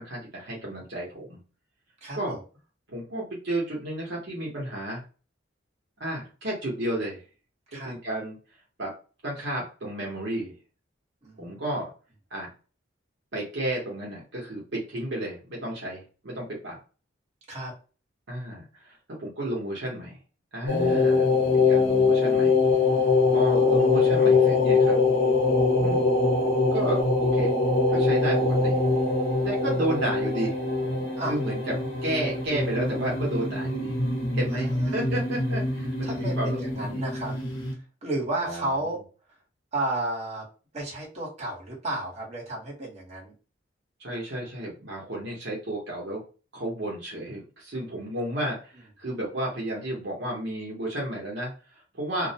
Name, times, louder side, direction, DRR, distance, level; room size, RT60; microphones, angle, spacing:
voice 1, 0.0-1.4 2.1-2.4 2.9-5.0 6.0-7.2 7.8-8.4 8.8-8.9 9.2-10.5 11.4-11.9 12.3-12.5 13.3-16.8 18.3-20.2 20.5-22.6 23.3-25.0 25.8-26.0 26.7-27.5 27.9-28.8 29.4-30.6 31.3-31.7 32.0-34.0 34.3-37.0 38.4-38.9 44.0-46.2 46.5-52.3, right 1 dB, 60° right, -3 dB, 0.8 m, -32 dB
voice 2, 2.0-2.4 7.7-7.9 11.2-11.6 17.5-17.7 22.9-23.4 23.7-24.0 31.2-31.3 34.5-35.0 36.0-37.3 38.0-39.0 39.7-40.4 40.7-43.3, right 2 dB, 35° right, -3 dB, 1.0 m, -33 dB
sound 1, 20.7-37.7, left 3 dB, 85° left, 0.9 m, -23 dB
2.4 x 2.1 x 2.7 m, 0.35 s
head